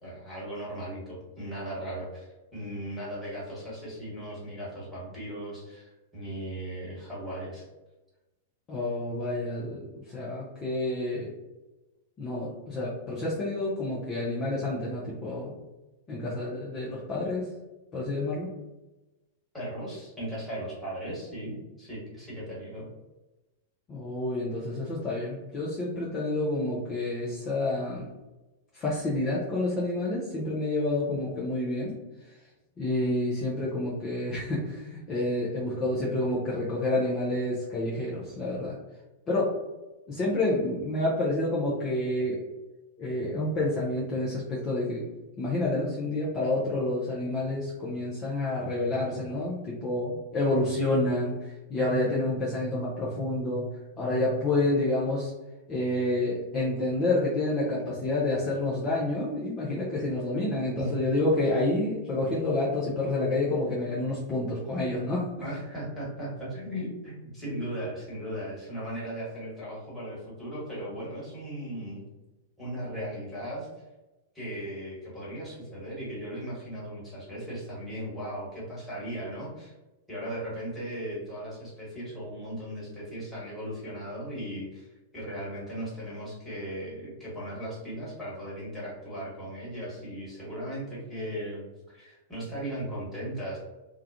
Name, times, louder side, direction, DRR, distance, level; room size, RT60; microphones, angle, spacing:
voice 1, 0.0-7.7 19.5-22.9 60.8-60.9 65.4-72.0 72.6-73.7 74.3-79.7 80.1-84.9 85.1-93.6, right 1 dB, ahead, -9 dB, 1.4 m, -37 dB
voice 2, 8.7-11.3 12.2-15.5 16.1-17.5 17.9-18.5 23.9-28.1 28.7-32.0 32.8-38.7 39.3-39.5 40.1-42.4 43.0-45.0 45.4-53.7 54.0-55.3 55.7-65.3, left 2 dB, 25° left, -6 dB, 0.6 m, -29 dB
2.3 x 2.2 x 2.7 m, 1.1 s
figure-of-eight pair, 95°, 0 cm